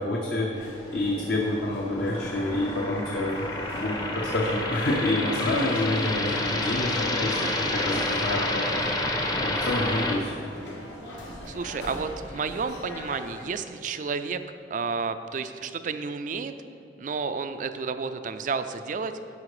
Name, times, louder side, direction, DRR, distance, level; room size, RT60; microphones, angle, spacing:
voice 1, 0.0-3.4 3.7-8.6 9.4-10.3, left 1 dB, 55° left, -2 dB, 0.8 m, -28 dB
sound 1, 0.5-13.5, left 1 dB, 80° left, 1.6 m, -41 dB
sound 2, 0.9-10.1, left 1 dB, 20° left, 0.7 m, -30 dB
voice 2, 11.5-14.4 14.7-16.5 17.0-19.1, right 5 dB, 45° right, 10 dB, 0.4 m, -31 dB
11.0 x 4.5 x 4.9 m, 2.8 s
head